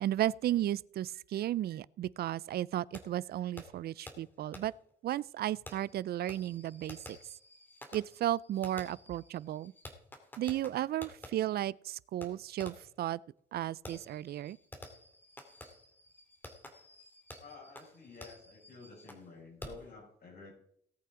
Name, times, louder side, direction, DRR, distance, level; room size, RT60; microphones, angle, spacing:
voice 1, 0.0-4.7 5.0-7.2 7.9-9.7 10.4-13.2 13.5-14.6, right 12 dB, 60° right, 0.4 m, -34 dB
Fireworks, 2.9-3.0 3.6-3.7 4.1-4.2 4.5-4.6 5.7-11.3 12.2-12.3 12.6-12.9 13.8-19.3 19.6-19.9, left 1 dB, 10° left, 2.2 m, -51 dB
voice 2, 17.4-20.5, left 3 dB, 55° left, 5.7 m, -51 dB
18.5 x 8.6 x 3.7 m
cardioid pair, 120°, 19 cm